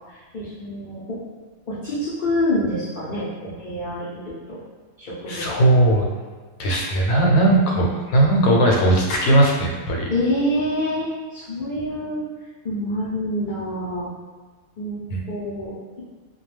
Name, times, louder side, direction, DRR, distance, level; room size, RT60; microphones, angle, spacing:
voice 1, 0.1-1.2 1.7-4.6 5.0-5.4 5.8-5.9 10.1-12.2 12.6-14.1 14.8-15.0 15.3-16.0, left 1 dB, 60° left, -10 dB, 0.5 m, -27 dB
voice 2, 5.3-6.1 6.6-10.1 15.1-15.2, right 1 dB, 75° left, -1 dB, 1.0 m, -18 dB
2.2 x 2.2 x 3.1 m, 1.4 s
omnidirectional pair, 1.5 m